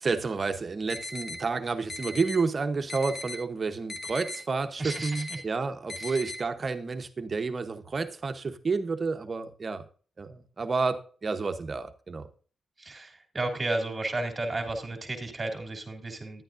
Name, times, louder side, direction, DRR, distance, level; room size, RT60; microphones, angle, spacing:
voice 1, 0.0-9.9 10.2-12.3, right 4 dB, 45° right, 0.9 m, -30 dB
sound 1, 0.9-1.4 1.9-2.4 2.9-3.4 3.9-4.4 4.9-5.4 5.9-6.4, left 3 dB, 30° left, 1.5 m, -37 dB
voice 2, 4.8-5.4 5.9-6.2 12.8-16.4, right 2 dB, 30° right, 2.7 m, -33 dB
11.0 x 9.0 x 2.6 m
cardioid pair, 60°, 0 cm